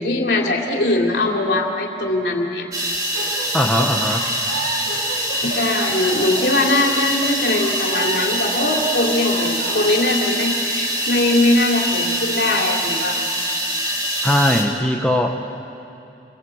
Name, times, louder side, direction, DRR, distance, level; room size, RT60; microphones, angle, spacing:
voice 1, 0.0-2.7 5.4-13.2, left 2 dB, 75° left, 0 dB, 3.2 m, -21 dB
sound 1, 2.7-14.6, right 1 dB, 20° right, 2.8 m, -24 dB
sound 2, 3.1-10.0, right 2 dB, 75° right, 3.5 m, -31 dB
voice 2, 3.5-4.3 14.2-15.4, left 1 dB, 5° left, 1 dB, 1.2 m, -19 dB
29.0 x 22.0 x 8.0 m, 2.8 s
head